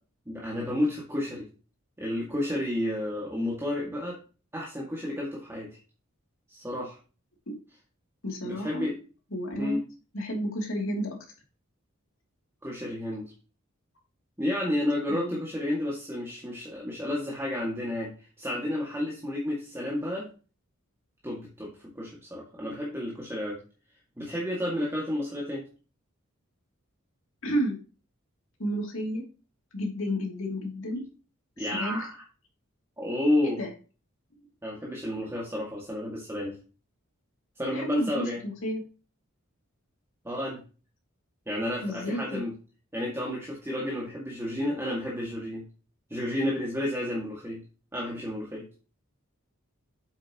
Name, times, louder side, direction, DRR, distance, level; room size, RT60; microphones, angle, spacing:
voice 1, 0.3-1.5 2.0-4.2 4.5-5.8 6.5-7.0 8.4-8.9 9.6-9.8 12.6-13.3 14.4-20.3 21.2-23.6 24.2-25.6 31.6-32.2 33.0-33.6 34.6-36.6 37.6-38.4 40.2-40.6 41.5-42.5 42.9-45.6 46.1-47.6 47.9-48.7, left 1 dB, 10° right, -4 dB, 2.2 m, -31 dB
voice 2, 8.2-8.9 9.3-9.8 10.1-11.2 15.1-15.4 27.4-27.8 28.6-29.2 29.7-31.0 31.6-32.0 33.4-33.7 34.4-34.5 37.7-38.8 41.8-42.4, equal, 70° left, 1 dB, 3.0 m, -31 dB
8.4 x 7.5 x 3.1 m, 0.34 s
head